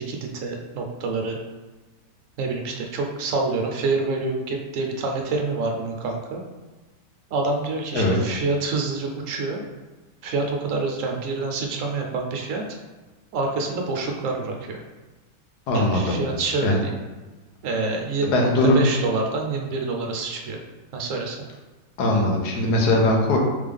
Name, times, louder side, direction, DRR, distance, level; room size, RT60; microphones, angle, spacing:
voice 1, 0.0-1.4 2.4-6.4 7.3-9.6 10.2-12.8 13.3-14.8 15.7-17.0 17.6-18.5 18.7-20.6 20.9-21.4, right 3 dB, 60° right, 2 dB, 0.9 m, -27 dB
voice 2, 15.7-16.2 16.6-16.8 18.3-18.8 22.0-23.4, left 1 dB, 70° left, -1 dB, 1.4 m, -20 dB
3.6 x 3.5 x 3.5 m, 1.2 s
omnidirectional pair, 1.9 m